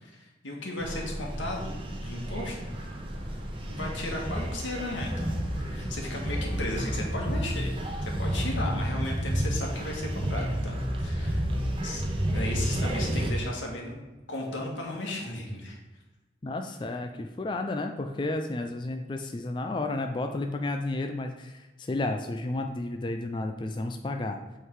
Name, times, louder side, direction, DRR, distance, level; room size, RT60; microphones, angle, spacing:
voice 1, 0.0-2.6 3.7-12.0 12.3-14.0 14.3-15.8, left 1 dB, 90° left, 0 dB, 1.8 m, -35 dB
sound 1, 0.8-13.3, equal, 30° right, 0.9 m, -31 dB
voice 2, 16.4-24.4, left 2 dB, 25° left, 5 dB, 0.4 m, -32 dB
8.2 x 3.9 x 4.7 m, 1.1 s
head